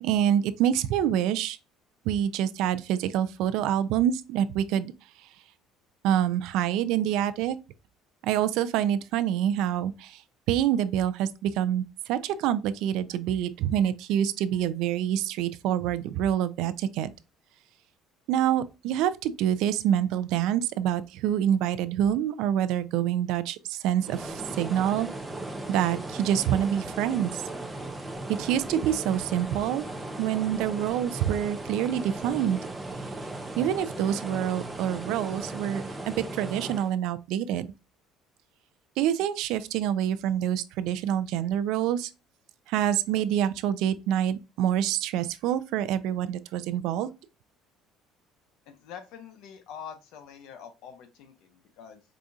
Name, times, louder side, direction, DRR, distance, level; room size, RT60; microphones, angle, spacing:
voice 1, 0.0-1.6 2.1-4.9 6.0-7.6 8.2-10.2 10.5-17.1 18.3-25.1 25.7-27.4 28.4-29.8 30.2-32.6 33.6-37.7 39.0-42.1 42.7-47.1, right 10 dB, 70° right, 0.3 m, -26 dB
sound 1, 24.0-36.9, right 2 dB, 10° right, 0.5 m, -37 dB
voice 2, 48.7-52.0, left 7 dB, 70° left, 0.8 m, -45 dB
4.9 x 2.4 x 2.6 m
cardioid pair, 150°, 0 cm